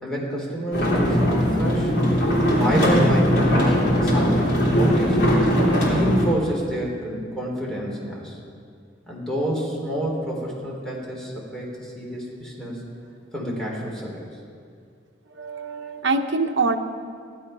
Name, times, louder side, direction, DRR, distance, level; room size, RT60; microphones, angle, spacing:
voice 1, 0.0-1.9 2.5-3.8 4.0-5.2 5.7-8.4 9.1-12.8 13.3-14.2, right 1 dB, 5° left, -4 dB, 3.3 m, -28 dB
sound 1, 0.7-6.3, equal, 60° left, 3.3 m, -20 dB
voice 2, 15.3-16.8, right 3 dB, 65° right, 4 dB, 1.0 m, -24 dB
15.5 x 11.0 x 5.6 m, 2.2 s
head